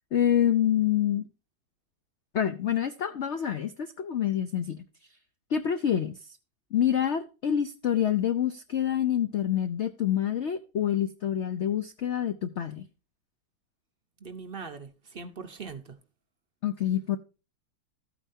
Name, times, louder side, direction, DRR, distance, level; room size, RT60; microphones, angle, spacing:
voice 1, 0.1-1.2 2.3-4.8 5.5-6.2 6.7-12.9 16.6-17.2, left 10 dB, 75° left, 0.6 m, -27 dB
voice 2, 14.2-16.0, right 5 dB, 50° right, 0.6 m, -41 dB
13.0 x 9.0 x 2.7 m
omnidirectional pair, 2.0 m